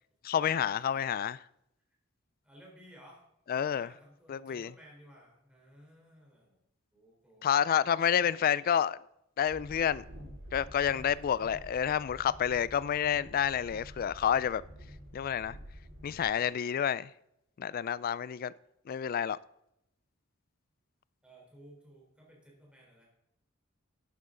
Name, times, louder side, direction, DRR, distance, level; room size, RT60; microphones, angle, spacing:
voice 1, 0.2-1.4 3.5-3.9 4.3-4.7 7.4-9.0 9.4-10.0 10.5-14.6 15.1-15.6 16.0-17.1 17.6-18.5 18.9-19.4, left 8 dB, 45° left, 0.3 m, -29 dB
voice 2, 2.4-3.2 3.5-6.6 6.9-7.5 7.9-8.3 10.8-11.5 21.2-23.0, equal, 5° right, 3.5 m, -57 dB
Train, 9.4-16.2, equal, 65° right, 4.8 m, -49 dB
12.0 x 9.3 x 3.8 m
head